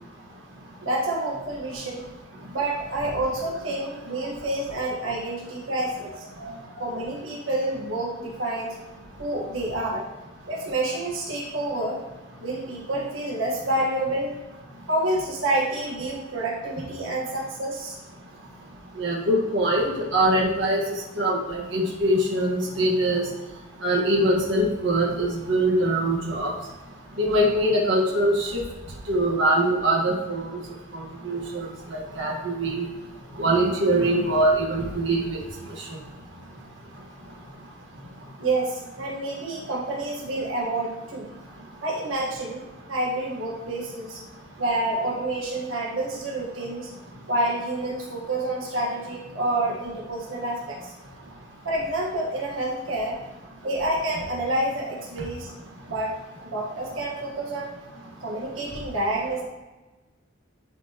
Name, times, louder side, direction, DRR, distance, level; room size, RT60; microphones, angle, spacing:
voice 1, 0.8-2.1 2.5-6.3 6.8-8.8 9.2-10.0 10.5-12.0 12.4-14.4 14.9-18.0 38.4-41.3 41.8-42.6 42.9-44.2 44.6-46.9 47.3-50.9 51.6-53.2 53.6-55.5 55.9-56.1 56.4-57.7 58.2-59.4, right 1 dB, 90° right, -4 dB, 1.5 m, -28 dB
voice 2, 19.0-20.8 21.2-23.2 23.8-26.5 27.2-28.6 29.1-30.4 30.9-31.6 31.9-32.9 33.4-35.2, right 1 dB, 65° right, -3 dB, 1.7 m, -23 dB
11.0 x 4.5 x 3.0 m, 1.1 s
head